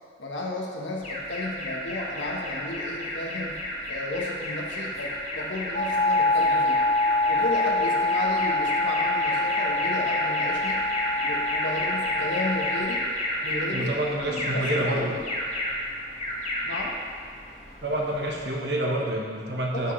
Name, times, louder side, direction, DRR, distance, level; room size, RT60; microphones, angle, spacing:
voice 1, 0.2-3.6 3.9-6.8 7.3-10.8 11.2-13.1 13.4-13.9 14.2-15.2 16.6-17.0 19.7-19.9, left 2 dB, 80° left, -1 dB, 1.3 m, -33 dB
Alarm, 1.0-18.6, left 1 dB, 35° left, 1.4 m, -31 dB
sound 1, 5.7-12.8, left 2 dB, 55° left, 2.1 m, -25 dB
voice 2, 13.7-15.2 17.8-19.9, right 1 dB, 60° right, -1 dB, 1.3 m, -28 dB
12.0 x 6.1 x 3.3 m, 2.2 s
head